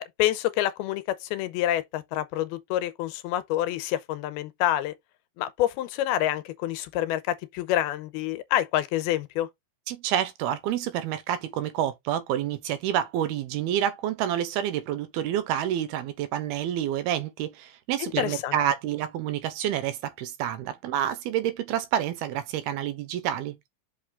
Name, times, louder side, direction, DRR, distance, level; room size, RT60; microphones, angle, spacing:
voice 1, 0.2-4.9 5.4-9.5 18.0-18.6, left 13 dB, 90° left, 2.7 m, -27 dB
voice 2, 9.9-23.6, right 11 dB, 80° right, 2.9 m, -28 dB
6.2 x 5.3 x 3.7 m
omnidirectional pair, 4.4 m